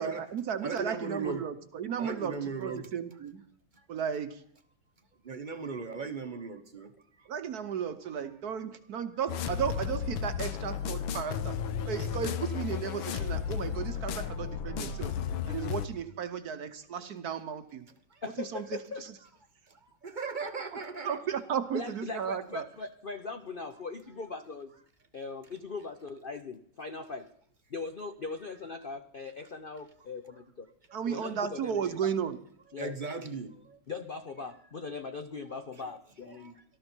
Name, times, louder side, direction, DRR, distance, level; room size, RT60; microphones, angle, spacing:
voice 1, 0.0-3.4 3.9-4.4 7.3-11.6 11.8-15.1 15.5-17.9 18.4-18.6 19.0-19.1 20.7-22.7 30.9-32.4, right 8 dB, 60° right, 1.2 m, -34 dB
voice 2, 0.6-1.5 2.0-2.9 3.7-3.8 5.2-7.3 14.6-14.8 18.1-18.2 19.7-21.2 29.7-29.8 32.7-33.8 35.5-36.0 36.2-36.6, right 4 dB, 35° right, 0.9 m, -38 dB
sound 1, 9.3-15.9, left 8 dB, 85° left, 1.7 m, -34 dB
voice 3, 18.2-19.0 21.7-24.7 25.1-27.3 27.7-30.7 31.1-32.1 32.7-33.0 33.9-36.5, left 4 dB, 60° left, 0.5 m, -40 dB
18.5 x 13.0 x 4.5 m
omnidirectional pair, 2.1 m